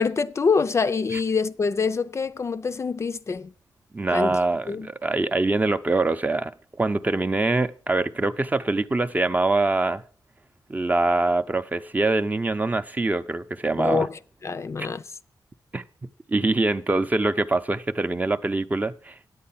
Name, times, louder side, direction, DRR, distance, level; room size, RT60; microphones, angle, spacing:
voice 1, 0.0-3.5 4.1-4.4 4.7-4.9 13.8-15.0, left 5 dB, 40° left, 0.4 m, -25 dB
voice 2, 3.9-6.5 6.8-10.0 10.7-14.1 15.7-19.2, right 2 dB, 20° right, 0.6 m, -24 dB
9.6 x 8.5 x 5.7 m
wide cardioid pair, 100°, 7 cm